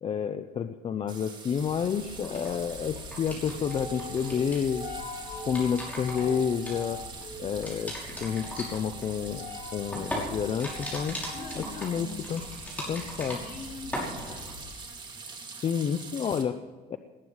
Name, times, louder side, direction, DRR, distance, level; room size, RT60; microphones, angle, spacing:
voice 1, 0.0-4.9 5.4-7.0 7.4-7.9 8.2-9.5 9.7-11.2 11.8-12.4 12.9-13.4 15.6-16.6 16.9-17.0, left 7 dB, 35° left, 10 dB, 0.6 m, -29 dB
sound 1, 1.1-16.4, right 4 dB, 25° right, 2.5 m, -43 dB
sound 2, 1.6-14.9, left 3 dB, 90° left, 6.5 m, -43 dB
sound 3, 2.2-3.7 4.0-4.7 5.3-7.2 7.6-13.7 13.9-14.5, equal, 10° left, 5.8 m, -38 dB
voice 2, 11.3-12.2 13.2-14.8, left 2 dB, 60° left, -1 dB, 4.4 m, -43 dB
19.5 x 9.8 x 6.3 m, 1.3 s
cardioid pair, 145°, 17 cm